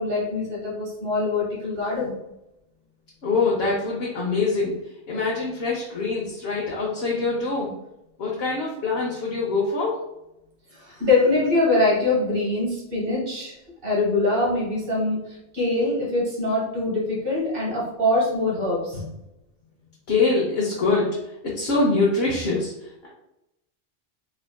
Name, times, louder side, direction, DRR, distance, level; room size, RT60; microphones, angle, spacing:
voice 1, 0.0-2.2 10.7-13.5 13.8-19.1, left 2 dB, 55° right, -4 dB, 1.3 m, -23 dB
voice 2, 3.2-4.8 5.1-7.7 8.2-10.0 20.1-21.2 21.5-23.1, left 3 dB, 65° left, -4 dB, 0.9 m, -24 dB
3.5 x 2.3 x 2.2 m, 0.88 s
omnidirectional pair, 1.2 m